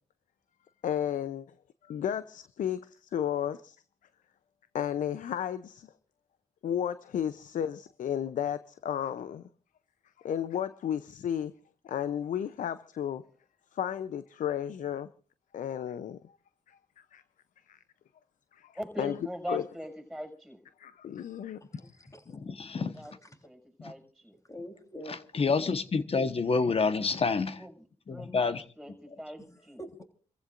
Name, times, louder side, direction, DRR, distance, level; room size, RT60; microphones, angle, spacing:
voice 1, 0.8-1.5 1.9-3.8 4.7-5.9 6.6-9.4 10.2-11.5 11.8-13.2 13.7-15.1 15.5-16.2 16.7-16.8 17.1-17.2 17.7-17.8 18.5-18.7 19.0-19.1 19.5-19.6 20.8-21.6, left 9 dB, 75° left, 0.6 m, -33 dB
voice 2, 18.7-20.6 22.7-23.1 23.4-24.3 27.6-29.8, equal, ahead, 6.2 m, -41 dB
voice 3, 21.6-22.4 23.0-23.1 24.5-25.2 29.8-30.0, equal, 25° left, 3.7 m, -45 dB
voice 4, 22.3-22.9 23.8-23.9 25.1-27.6 28.1-28.6, left 4 dB, 45° left, 1.3 m, -28 dB
29.5 x 15.0 x 2.6 m
cardioid pair, 60°, 13 cm